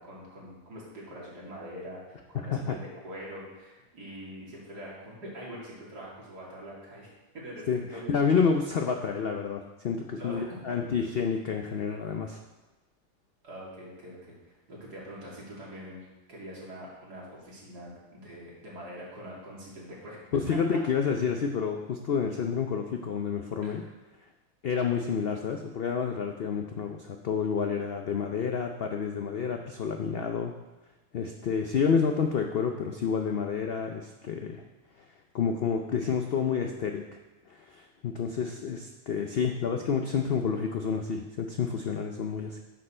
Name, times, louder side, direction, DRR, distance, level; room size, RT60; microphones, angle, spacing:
voice 1, 0.0-7.1 7.3-8.1 10.1-10.8 13.4-20.2 20.5-20.6 23.6-23.9, equal, 75° right, -5 dB, 3.1 m, -44 dB
voice 2, 2.3-2.8 7.7-12.4 20.3-23.8 24.6-30.5 31.1-34.6 35.0-35.1 35.3-37.1 37.5-42.6, left 6 dB, 80° left, 4 dB, 0.5 m, -29 dB
9.4 x 6.7 x 4.3 m, 1.1 s
omnidirectional pair, 1.7 m